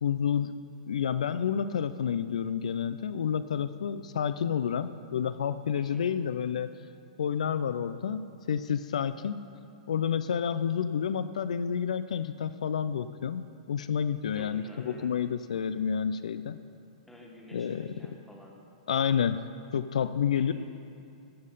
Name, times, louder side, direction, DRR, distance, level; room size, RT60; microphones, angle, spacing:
voice 1, 0.0-0.5 0.9-6.7 7.2-9.4 9.9-16.6 17.5-17.9 18.9-19.4 19.7-20.5, left 8 dB, 80° left, 12 dB, 0.4 m, -29 dB
voice 2, 5.7-6.1 14.3-15.1 17.1-18.6 20.3-20.4, equal, 5° left, -1 dB, 1.6 m, -50 dB
14.5 x 5.5 x 5.4 m, 2.5 s
hypercardioid pair, 125°, 4 cm